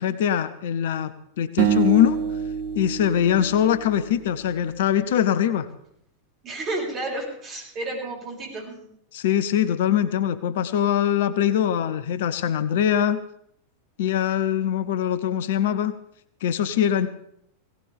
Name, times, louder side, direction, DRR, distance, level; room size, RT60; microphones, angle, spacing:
voice 1, 0.0-2.2 2.7-5.7 9.1-13.2 14.0-15.9 16.4-17.1, left 10 dB, 55° left, 14 dB, 0.8 m, -22 dB
sound 1, 1.6-4.8, right 8 dB, 50° right, 1.5 m, -27 dB
voice 2, 6.4-8.9, right 2 dB, 30° right, -2 dB, 6.7 m, -31 dB
19.0 x 17.5 x 3.5 m, 0.70 s
figure-of-eight pair, 90°, 0 cm